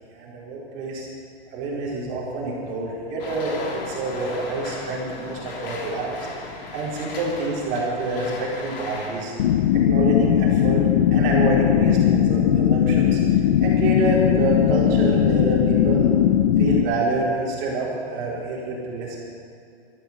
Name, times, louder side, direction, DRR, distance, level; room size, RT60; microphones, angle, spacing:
voice 1, 0.1-1.1 1.5-6.2 6.7-9.3 9.7-13.2 13.6-16.2 16.6-19.2, right 2 dB, 30° right, -5 dB, 4.5 m, -27 dB
sound 1, 3.2-9.2, left 3 dB, 60° left, 3.3 m, -36 dB
sound 2, 9.4-16.8, left 10 dB, 45° left, 0.7 m, -19 dB
14.5 x 13.5 x 7.5 m, 2.3 s
hypercardioid pair, 165°, 32 cm